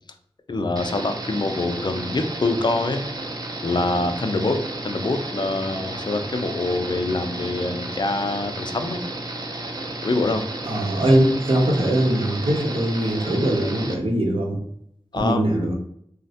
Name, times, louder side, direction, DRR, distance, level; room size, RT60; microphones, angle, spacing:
voice 1, 0.5-3.0 3.6-9.0 10.0-10.4 15.1-15.4, left 2 dB, 50° left, 6 dB, 0.4 m, -25 dB
sound 1, 0.8-14.0, right 2 dB, 40° right, 0.5 m, -33 dB
voice 2, 10.7-14.6 15.1-15.7, right 1 dB, 70° right, 0 dB, 0.8 m, -21 dB
3.1 x 2.1 x 2.7 m, 0.69 s
cardioid pair, 45°, 10 cm